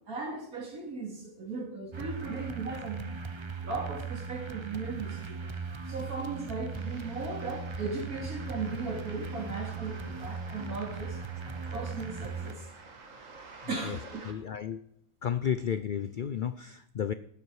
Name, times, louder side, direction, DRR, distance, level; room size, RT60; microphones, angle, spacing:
voice 1, 0.1-3.0 3.6-5.4 5.9-11.2 11.7-12.7 13.7-14.4, right 3 dB, 85° right, 2 dB, 2.9 m, -37 dB
sound 1, 1.9-12.5, right 5 dB, 30° right, 0.5 m, -38 dB
sound 2, 6.7-14.3, right 3 dB, 60° right, 2.0 m, -51 dB
voice 2, 14.2-14.8 15.2-17.1, left 8 dB, 90° left, 13 dB, 0.4 m, -32 dB
12.5 x 9.5 x 4.8 m, 0.71 s
omnidirectional pair, 1.5 m